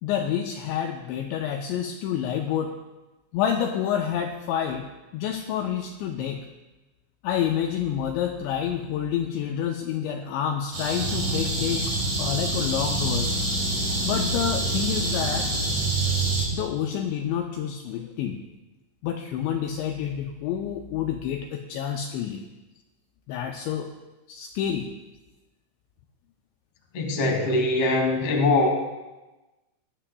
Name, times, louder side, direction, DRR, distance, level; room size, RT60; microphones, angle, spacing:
voice 1, 0.0-2.7 3.3-6.4 7.2-11.8 12.2-13.4 14.1-15.5 16.5-18.4 19.0-22.5 23.3-23.9 24.3-24.9, left 9 dB, 85° left, 3 dB, 2.6 m, -28 dB
sound 1, 10.7-16.5, right 2 dB, 40° right, 3.8 m, -26 dB
voice 2, 26.9-28.7, left 2 dB, 55° left, 1 dB, 1.7 m, -22 dB
18.5 x 12.5 x 2.3 m, 1.1 s
omnidirectional pair, 5.8 m